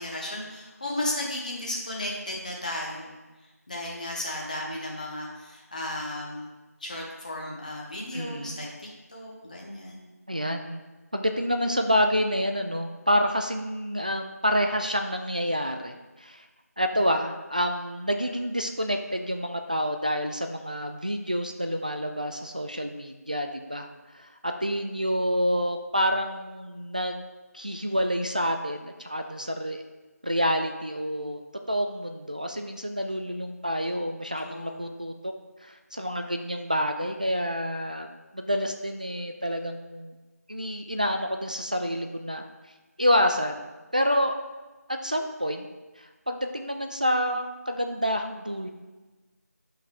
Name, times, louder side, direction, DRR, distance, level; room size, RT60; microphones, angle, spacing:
voice 1, 0.0-3.1 3.7-6.5 6.8-8.7 9.1-10.1 34.4-34.9, left 1 dB, 30° left, -2 dB, 1.1 m, -34 dB
voice 2, 8.1-8.7 10.3-10.8 11.1-16.5 16.8-23.9 24.1-27.2 27.5-29.8 30.2-31.4 31.7-35.3 35.6-40.1 40.5-42.4 43.0-44.3 45.0-45.7 46.0-48.7, equal, 30° right, 4 dB, 0.3 m, -28 dB
8.6 x 5.7 x 2.9 m, 1.2 s
figure-of-eight pair, 170°, 9 cm